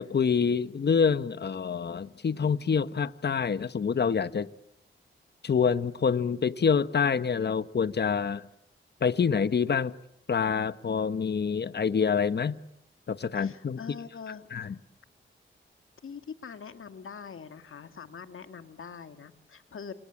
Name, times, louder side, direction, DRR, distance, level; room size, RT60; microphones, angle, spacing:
voice 1, 0.0-4.5 5.4-8.4 9.0-9.9 10.3-12.6 13.1-13.8 14.5-14.7, left 6 dB, 55° left, 1.0 m, -26 dB
voice 2, 13.3-14.8 16.0-19.9, left 6 dB, 80° left, 2.2 m, -43 dB
29.0 x 27.0 x 7.3 m
wide cardioid pair, 85°, 21 cm